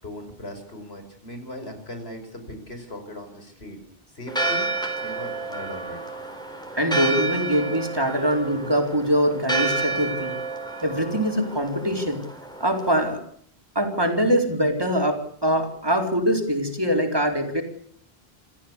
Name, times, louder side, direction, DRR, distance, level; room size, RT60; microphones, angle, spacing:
voice 1, 0.0-3.8 4.1-4.7 5.0-6.0, left 1 dB, 85° left, 6 dB, 5.7 m, -38 dB
Church bell, 4.3-13.1, right 3 dB, 5° left, 4.0 m, -30 dB
voice 2, 6.7-10.4 10.8-12.2 12.6-13.2 13.7-17.6, equal, 25° right, 3 dB, 4.6 m, -23 dB
28.0 x 15.0 x 8.4 m, 0.65 s
omnidirectional pair, 1.0 m